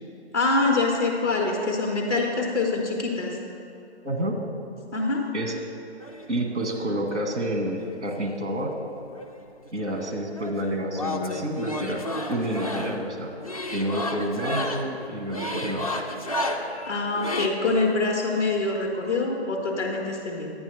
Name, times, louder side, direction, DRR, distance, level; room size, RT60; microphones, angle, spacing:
voice 1, 0.3-3.4 4.9-5.3 16.9-20.5, left 3 dB, 10° left, 0 dB, 0.9 m, -25 dB
voice 2, 4.0-4.4 5.3-5.6 6.3-8.8 9.7-12.0 12.3-13.3 13.7-15.8, right 1 dB, 80° right, 1 dB, 1.9 m, -29 dB
sound 1, 6.0-6.9 7.7-8.8 9.1-17.5, left 1 dB, 35° left, 0.4 m, -32 dB
9.8 x 9.8 x 3.5 m, 2.7 s
hypercardioid pair, 170°, 34 cm